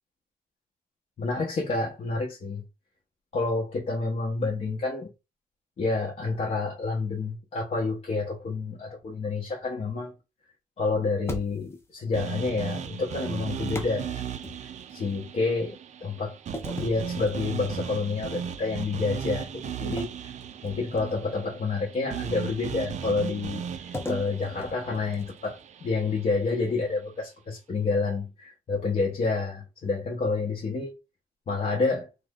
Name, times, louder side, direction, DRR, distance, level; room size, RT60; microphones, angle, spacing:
voice 1, 1.2-2.6 3.3-5.1 5.8-10.1 10.8-14.3 14.6-16.4 16.8-20.3 20.6-30.9 31.5-32.1, left 3 dB, 45° left, 1.0 m, -29 dB
sound 1, 11.3-11.9 13.7-15.0 16.5-17.9 18.3-18.6 19.9-21.4 23.9-25.6, left 1 dB, 15° left, 0.6 m, -38 dB
sound 2, 12.1-26.3, right 8 dB, 55° right, 0.4 m, -37 dB
3.4 x 2.1 x 3.5 m
wide cardioid pair, 145°, 15 cm